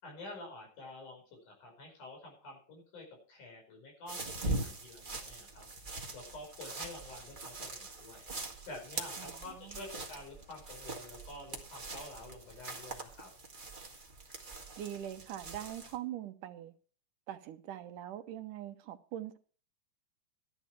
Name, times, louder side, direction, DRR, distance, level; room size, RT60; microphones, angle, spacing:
voice 1, 0.0-5.7 6.1-8.3 8.7-13.3, left 2 dB, 70° left, 6.7 m, -49 dB
sound 1, 4.1-16.0, right 2 dB, 20° right, 1.3 m, -42 dB
voice 2, 9.2-9.9 14.8-16.7 17.3-19.4, right 12 dB, 85° right, 2.6 m, -43 dB
13.5 x 10.5 x 4.7 m
omnidirectional pair, 3.6 m